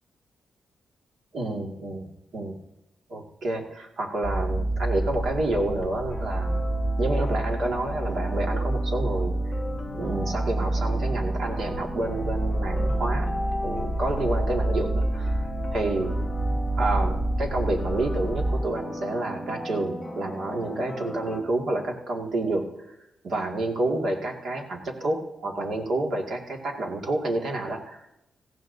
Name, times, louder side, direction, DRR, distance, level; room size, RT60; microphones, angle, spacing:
voice 1, 1.3-2.6 3.1-6.6 7.0-9.3 9.9-13.3 13.6-15.4 15.7-16.2 16.8-23.0 23.2-28.1, right 2 dB, 60° right, 1 dB, 2.0 m, -29 dB
sound 1, 4.2-18.6, right 1 dB, 40° right, 4.5 m, -28 dB
sound 2, 6.1-21.4, left 1 dB, 10° left, 1.2 m, -37 dB
18.5 x 15.5 x 2.7 m, 0.88 s
wide cardioid pair, 160°, 0 cm